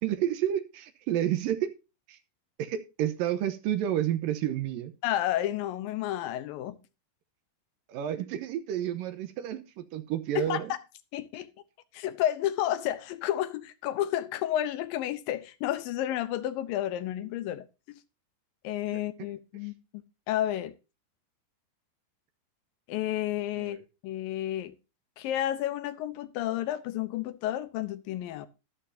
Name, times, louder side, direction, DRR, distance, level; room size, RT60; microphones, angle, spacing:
voice 1, 0.0-1.7 2.1-2.2 2.6-4.9 7.9-10.7 18.9-19.0 23.6-23.8, right 11 dB, 90° right, 2.7 m, -30 dB
voice 2, 5.0-6.8 10.4-10.8 11.1-11.5 11.9-18.0 18.6-19.7 20.3-20.7 22.9-23.8 24.0-24.7 25.2-28.5, left 12 dB, 90° left, 2.6 m, -31 dB
13.0 x 11.5 x 2.7 m
omnidirectional pair, 3.9 m